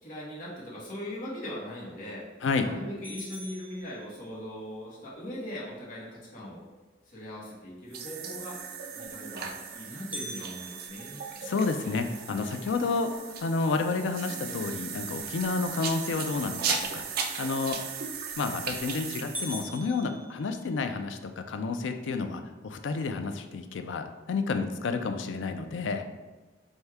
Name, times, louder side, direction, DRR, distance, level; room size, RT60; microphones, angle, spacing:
voice 1, 0.0-2.2 2.5-6.6 7.1-8.6 8.9-11.2, left 1 dB, 45° left, -6 dB, 1.2 m, -40 dB
sound 1, 3.0-4.6 10.1-12.3 12.8-12.9 13.4-13.5 14.1-14.5 18.1-18.5 18.9-19.0 19.3-21.1, equal, 10° right, 0.6 m, -43 dB
sound 2, 7.9-19.7, right 6 dB, 55° right, 0.4 m, -37 dB
voice 2, 11.4-13.1 13.4-17.1 17.4-17.8 18.4-26.0, left 4 dB, 75° left, 7 dB, 0.4 m, -30 dB
4.5 x 2.7 x 3.4 m, 1.2 s
head